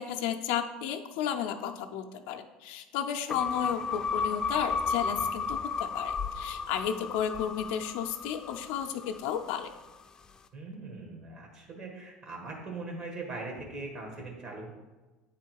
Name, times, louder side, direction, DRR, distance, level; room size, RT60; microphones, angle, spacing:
voice 1, 0.0-9.7, left 9 dB, 80° left, 5 dB, 0.5 m, -33 dB
sound 1, 3.3-9.7, left 5 dB, 20° left, 0.5 m, -33 dB
voice 2, 10.5-14.7, right 3 dB, 50° right, -1 dB, 1.4 m, -41 dB
8.3 x 3.7 x 4.6 m, 1.2 s
supercardioid pair, 110°, 3 cm